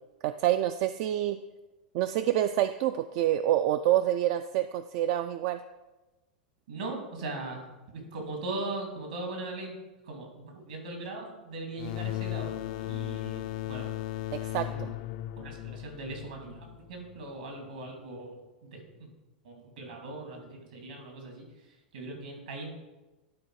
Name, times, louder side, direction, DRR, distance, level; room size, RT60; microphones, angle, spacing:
voice 1, 0.2-1.4 1.9-5.6 14.3-14.9, right 12 dB, 50° right, 10 dB, 0.3 m, -27 dB
voice 2, 6.7-7.7 7.9-9.7 10.0-12.5 12.8-13.9 14.7-15.0 15.4-18.3 18.6-19.1 19.4-21.4 21.9-22.8, right 2 dB, 75° right, 1 dB, 2.6 m, -39 dB
sound 1, 11.8-17.2, left 14 dB, 60° left, 0.4 m, -36 dB
11.5 x 4.0 x 4.8 m, 1.1 s
hypercardioid pair, 100°, 5 cm